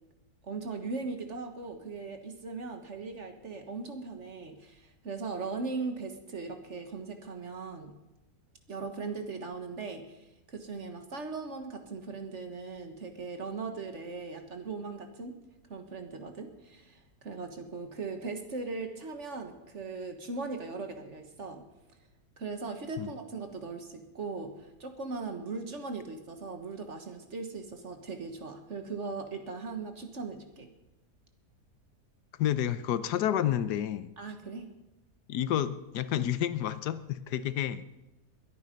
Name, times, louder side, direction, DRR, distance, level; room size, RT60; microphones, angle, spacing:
voice 1, 0.4-8.0 8.7-15.4 15.7-21.6 22.4-30.7 34.2-34.7, right 4 dB, 50° right, 6 dB, 1.7 m, -39 dB
voice 2, 32.4-34.1 35.3-38.0, left 10 dB, 90° left, 14 dB, 1.3 m, -30 dB
21.5 x 9.8 x 5.3 m, 0.99 s
omnidirectional pair, 1.7 m